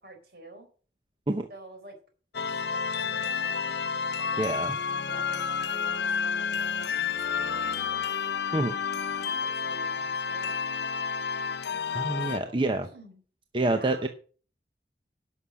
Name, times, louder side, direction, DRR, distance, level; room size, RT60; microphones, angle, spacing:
voice 1, 0.0-0.7 1.5-2.0 2.3-2.4 2.7-3.9 4.2-5.4 5.7-8.1 8.9-10.5 12.3-13.2 13.6-14.1, right 1 dB, 60° right, 4 dB, 4.2 m, -49 dB
sound 1, 2.3-12.4, left 6 dB, 75° left, 0.6 m, -30 dB
voice 2, 4.4-4.8 8.5-8.8 11.9-12.9 13.5-14.1, right 2 dB, 30° right, 6 dB, 0.8 m, -27 dB
11.0 x 6.4 x 7.3 m, 0.40 s
head